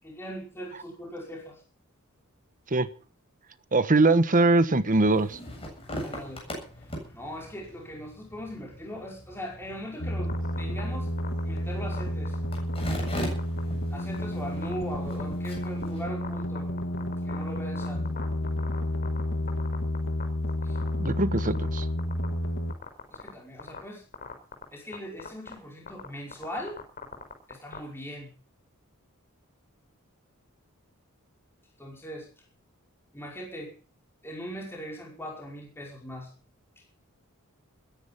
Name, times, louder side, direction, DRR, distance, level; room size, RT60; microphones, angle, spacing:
voice 1, 0.0-1.6 6.0-6.5 6.8-6.9 7.1-11.1 11.4-12.4 13.9-16.7 17.2-18.0 20.6-20.8 23.1-24.0 24.7-26.8 27.5-28.3 31.8-32.3 33.1-33.7 34.2-36.3, equal, 10° left, -1 dB, 5.2 m, -40 dB
voice 2, 3.7-5.4 21.0-21.9, right 2 dB, 40° right, 13 dB, 1.2 m, -22 dB
sound 1, 4.9-16.0, equal, 25° left, 7.8 m, -41 dB
sound 2, 10.0-22.7, left 1 dB, 60° left, 2.1 m, -31 dB
sound 3, 10.3-10.8 11.2-11.4 11.9-13.1 13.4-13.6 14.0-14.2 14.6-14.7 15.1-15.8 16.2-19.2 19.5-20.2 20.5-21.1 21.4-22.3 22.7-23.3 23.6-23.8 24.1-24.6 24.9-25.0 25.2-25.5 25.9-26.1 26.3-27.8, left 5 dB, 40° left, 5.2 m, -39 dB
21.0 x 10.5 x 5.8 m, 0.38 s
head